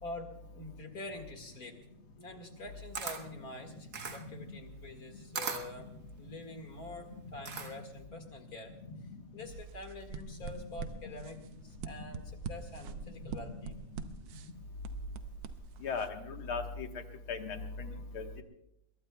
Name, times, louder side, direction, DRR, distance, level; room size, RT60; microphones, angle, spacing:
voice 1, 0.0-1.8 2.2-8.7 9.0-13.8, left 2 dB, 45° left, 5 dB, 2.4 m, -46 dB
Camera, 2.6-8.0, right 5 dB, 50° right, 1.8 m, -41 dB
sound 1, 9.4-16.1, right 6 dB, 80° right, 1.7 m, -44 dB
voice 2, 15.8-16.9 17.3-17.9 18.1-18.4, left 5 dB, 80° left, 4 dB, 2.3 m, -37 dB
22.5 x 21.5 x 2.3 m, 0.78 s
omnidirectional pair, 2.3 m